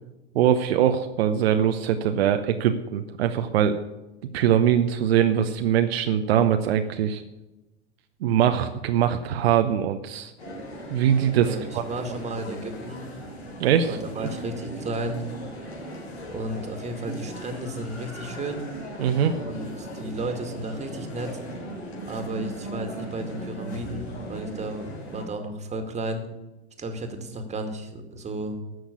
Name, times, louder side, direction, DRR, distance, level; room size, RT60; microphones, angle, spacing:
voice 1, 0.3-3.8 4.3-7.2 8.2-10.3 10.9-11.8 13.6-14.3 19.0-19.4, right 9 dB, 65° right, 7 dB, 0.9 m, -22 dB
sound 1, 10.4-25.2, right 1 dB, 70° left, 4.1 m, -38 dB
voice 2, 11.4-13.0 13.8-15.2 16.3-18.6 19.3-21.4 22.1-26.2 26.8-28.6, right 1 dB, 20° right, 6 dB, 2.2 m, -33 dB
12.5 x 6.4 x 8.3 m, 1.0 s
figure-of-eight pair, 85°, 33 cm